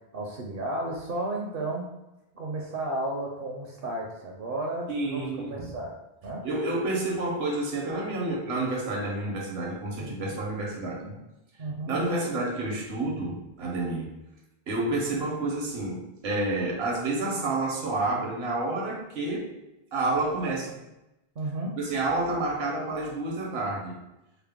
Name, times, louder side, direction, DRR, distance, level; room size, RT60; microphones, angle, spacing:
voice 1, 0.1-1.9 2.3-5.9 6.2-6.4 10.0-10.2 11.6-11.9 21.4-21.7, right 2 dB, 65° right, -1 dB, 0.8 m, -33 dB
voice 2, 4.9-5.7 6.4-11.2 11.9-14.1 14.7-19.5 19.9-20.8 21.8-24.0, right 2 dB, 80° right, -1 dB, 1.2 m, -29 dB
4.4 x 2.1 x 3.5 m, 0.94 s
omnidirectional pair, 1.1 m